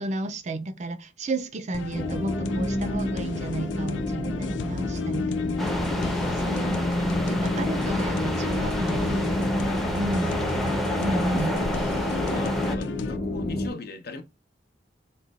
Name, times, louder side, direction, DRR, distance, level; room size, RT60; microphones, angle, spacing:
voice 1, 0.0-6.0 6.4-7.0 7.3-9.4 9.9-10.3 11.0-11.5, right 1 dB, 40° right, 0.5 m, -32 dB
sound 1, 1.7-13.2, left 7 dB, 80° left, 0.3 m, -39 dB
sound 2, 1.9-13.7, left 1 dB, 25° left, 0.9 m, -29 dB
sound 3, 5.6-12.8, equal, ahead, 0.6 m, -30 dB
voice 2, 6.1-6.6 10.9-11.4 12.1-14.2, left 3 dB, 60° left, 0.7 m, -39 dB
3.8 x 2.2 x 4.0 m
head